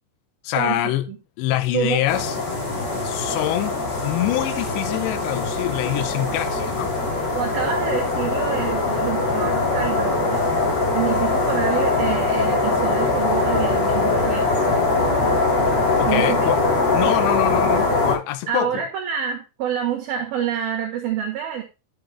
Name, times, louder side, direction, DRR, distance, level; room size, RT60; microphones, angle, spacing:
voice 1, 0.4-1.1 1.4-2.4 3.0-6.9 16.0-16.6 16.9-18.8, left 14 dB, 75° left, 2.8 m, -25 dB
sound 1, 2.1-18.1, left 3 dB, 40° left, 3.5 m, -22 dB
voice 2, 7.4-10.5 10.9-14.8 16.1-16.7 17.0-17.1 18.5-21.6, right 9 dB, 60° right, 2.9 m, -27 dB
11.5 x 6.6 x 3.6 m
omnidirectional pair, 5.8 m